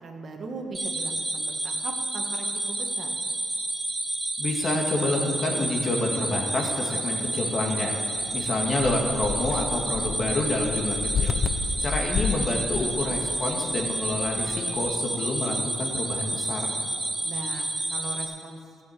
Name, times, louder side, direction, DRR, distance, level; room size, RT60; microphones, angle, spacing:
voice 1, 0.0-3.1 17.2-18.6, right 3 dB, 50° right, 2 dB, 1.7 m, -39 dB
sound 1, 0.7-18.2, right 2 dB, 15° right, 2.5 m, -30 dB
voice 2, 4.4-8.0 8.3-11.4 11.8-16.7, left 2 dB, 40° left, 0 dB, 2.5 m, -28 dB
sound 2, 8.2-15.0, left 6 dB, 60° left, 0.7 m, -33 dB
13.5 x 8.1 x 8.4 m, 2.6 s
cardioid pair, 90°, 0 cm